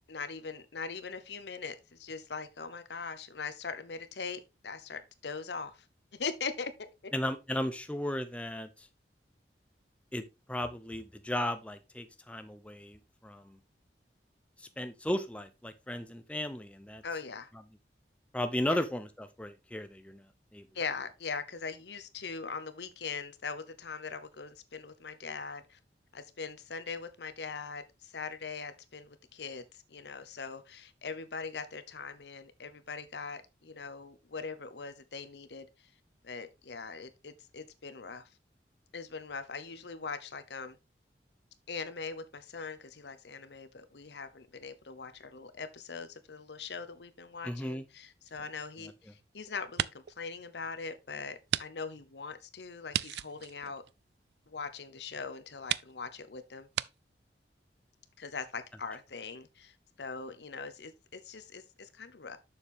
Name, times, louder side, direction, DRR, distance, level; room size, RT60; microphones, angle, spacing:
voice 1, 0.1-5.9 6.1-7.1 17.0-17.5 18.7-18.8 20.7-25.8 26.1-35.7 36.2-38.3 38.9-40.8 41.7-53.8 54.5-56.7 58.2-62.4, left 5 dB, 75° left, 0.9 m, -41 dB
voice 2, 7.1-8.9 10.1-10.2 10.5-13.6 14.6-17.0 18.3-20.3 20.5-20.7 47.4-47.8, left 1 dB, 5° left, 0.6 m, -35 dB
sound 1, 48.3-49.2 49.6-50.2 50.6-50.7 51.5-51.7 51.9-52.0 52.9-54.5 55.1-55.2 55.7-55.9 56.7-56.9, right 11 dB, 70° right, 0.3 m, -35 dB
7.1 x 6.7 x 3.5 m
head